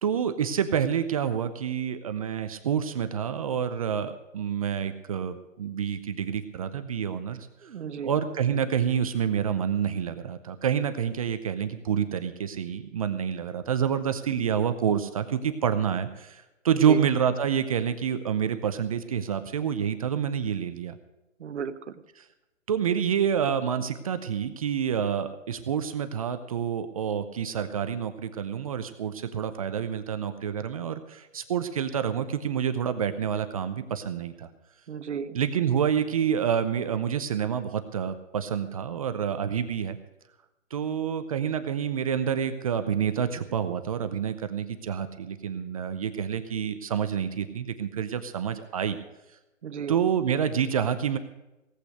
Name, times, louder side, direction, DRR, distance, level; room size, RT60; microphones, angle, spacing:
voice 1, 0.0-7.5 8.0-20.9 22.7-34.5 35.3-40.0 40.7-49.0 49.9-51.2, right 8 dB, 30° right, 10 dB, 0.6 m, -28 dB
voice 2, 7.6-8.2 16.9-17.0 21.4-22.0 34.9-35.4 49.6-50.0, right 7 dB, 60° right, 12 dB, 1.1 m, -34 dB
17.5 x 8.3 x 6.6 m, 0.99 s
hypercardioid pair, 155°, 39 cm